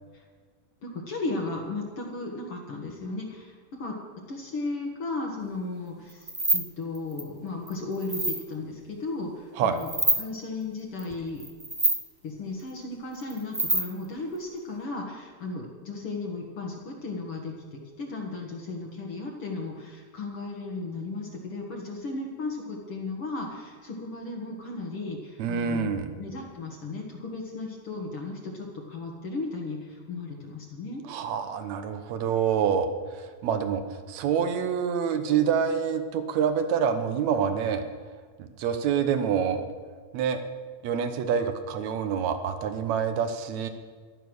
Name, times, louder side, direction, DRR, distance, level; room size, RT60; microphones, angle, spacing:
voice 1, 0.8-4.0 4.3-9.9 10.2-11.4 12.2-31.0, left 3 dB, 50° left, -1 dB, 2.3 m, -35 dB
sound 1, 6.1-6.7 6.9-7.2 7.7-8.4 9.8-10.2 11.0-11.1 11.4-12.0 13.2-14.0, right 1 dB, 20° right, 0.6 m, -26 dB
voice 2, 25.4-26.1 31.1-32.9 33.1-33.8 34.1-37.8 38.4-39.7 40.1-40.4 40.8-43.7, right 7 dB, 70° right, 8 dB, 2.3 m, -26 dB
14.0 x 11.5 x 6.3 m, 1.5 s
omnidirectional pair, 3.4 m